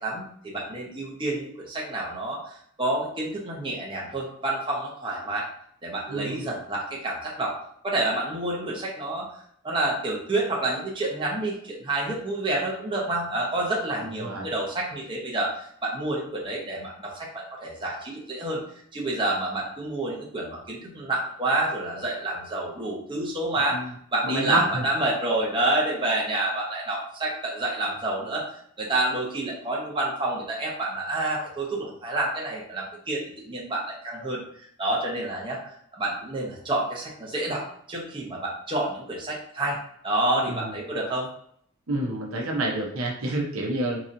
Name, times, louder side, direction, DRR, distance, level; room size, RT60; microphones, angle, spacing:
voice 1, 0.0-2.4 2.8-5.5 5.8-7.5 7.8-9.2 9.6-18.6 18.9-23.8 24.1-28.5 28.8-34.4 34.8-35.6 35.9-39.8 40.0-41.3, right 2 dB, 25° right, -4 dB, 0.9 m, -28 dB
voice 2, 6.1-6.5 14.0-14.5 23.7-23.9 24.2-24.8 40.5-40.7 41.9-44.0, right 1 dB, 75° right, -1 dB, 0.8 m, -29 dB
3.9 x 2.9 x 2.6 m, 0.64 s
head